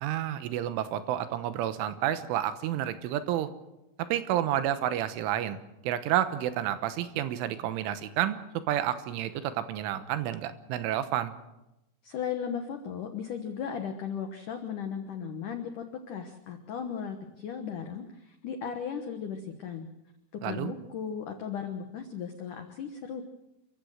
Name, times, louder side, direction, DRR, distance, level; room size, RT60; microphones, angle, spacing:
voice 1, 0.0-3.5 4.1-5.6 5.8-8.4 8.7-11.4 20.4-20.7, right 11 dB, 80° right, 11 dB, 3.5 m, -30 dB
voice 2, 12.0-19.9 20.4-23.2, left 7 dB, 80° left, 6 dB, 1.8 m, -36 dB
28.5 x 15.5 x 6.5 m, 0.93 s
omnidirectional pair, 5.6 m